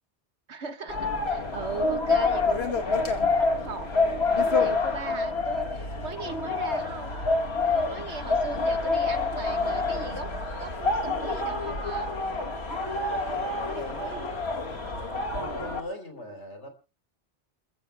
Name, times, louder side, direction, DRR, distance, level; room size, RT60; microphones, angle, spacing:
voice 1, 0.5-3.1 3.4-3.9 4.4-7.2 7.7-10.3 10.6-12.1 13.6-14.3, right 4 dB, 75° right, 1.7 m, -38 dB
sound 1, 0.9-15.8, left 3 dB, 65° left, 2.4 m, -27 dB
voice 2, 12.5-16.7, equal, 80° left, 3.7 m, -41 dB
28.0 x 15.0 x 2.2 m
omnidirectional pair, 1.2 m